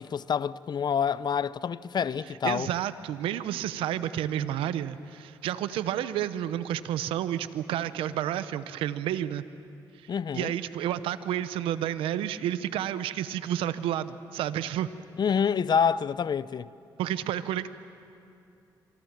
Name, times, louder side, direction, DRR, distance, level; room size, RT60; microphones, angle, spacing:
voice 1, 0.0-2.7 10.1-10.5 15.2-16.7, left 7 dB, 50° left, 0.7 m, -27 dB
voice 2, 2.4-9.4 10.0-14.9 17.0-17.7, right 11 dB, 85° right, 0.8 m, -30 dB
26.5 x 24.0 x 7.3 m
supercardioid pair, 60°, 9 cm